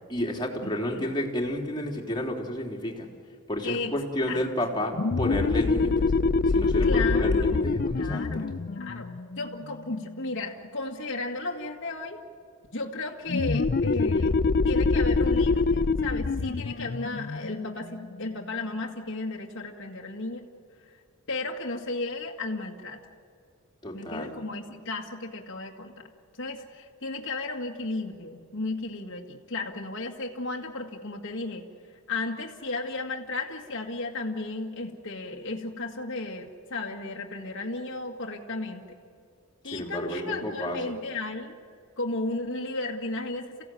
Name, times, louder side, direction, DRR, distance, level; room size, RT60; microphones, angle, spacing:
voice 1, 0.1-3.1 3.5-6.1 6.5-8.5 23.8-24.4 39.6-41.0, equal, 20° left, 0 dB, 3.3 m, -31 dB
voice 2, 0.6-1.1 3.6-3.9 4.3-4.4 6.8-9.1 9.4-12.2 12.7-14.3 14.6-20.4 21.3-23.0 23.9-26.1 26.4-31.7 32.1-38.9 39.6-41.5 42.0-43.6, left 2 dB, 60° left, 0 dB, 2.0 m, -34 dB
sound 1, 4.9-10.2 13.3-18.6, left 3 dB, 45° left, 0.5 m, -25 dB
28.5 x 16.5 x 9.3 m, 2.4 s
head